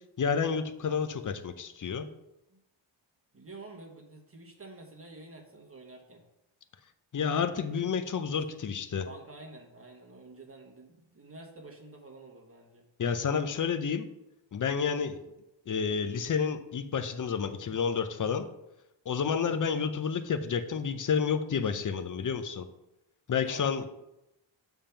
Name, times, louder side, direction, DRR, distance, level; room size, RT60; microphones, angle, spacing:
voice 1, 0.2-2.1 7.1-9.0 13.0-14.1 14.5-15.2 15.7-18.5 19.1-22.6 23.3-23.8, left 6 dB, 40° left, 10 dB, 0.7 m, -30 dB
voice 2, 3.3-6.2 8.3-8.7 9.0-12.8 23.4-23.9, right 2 dB, 25° right, 0 dB, 1.3 m, -49 dB
7.2 x 3.6 x 5.7 m, 0.89 s
cardioid pair, 85°, 49 cm